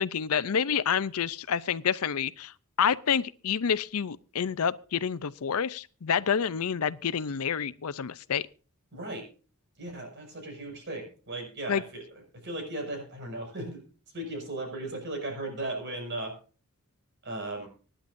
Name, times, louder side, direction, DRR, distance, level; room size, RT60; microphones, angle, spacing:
voice 1, 0.0-2.5 2.8-8.4 11.7-11.8, left 7 dB, 75° left, 0.6 m, -28 dB
voice 2, 8.9-9.2 9.8-12.0 12.4-13.8 14.1-16.3 17.2-17.7, right 2 dB, 55° right, 6.1 m, -36 dB
24.5 x 10.0 x 2.6 m
head